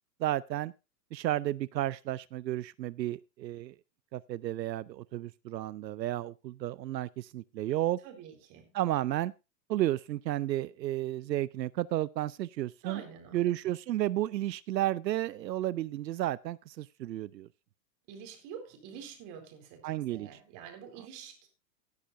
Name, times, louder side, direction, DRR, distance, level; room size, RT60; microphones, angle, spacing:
voice 1, 0.2-0.7 1.1-3.7 4.1-8.0 8.7-9.3 9.7-13.0 13.3-17.5 19.8-20.3, right 14 dB, 80° right, 0.7 m, -32 dB
voice 2, 8.0-8.7 12.8-13.4 18.1-21.5, right 7 dB, 40° right, 4.3 m, -47 dB
17.5 x 9.9 x 2.6 m
hypercardioid pair, 125°, 50 cm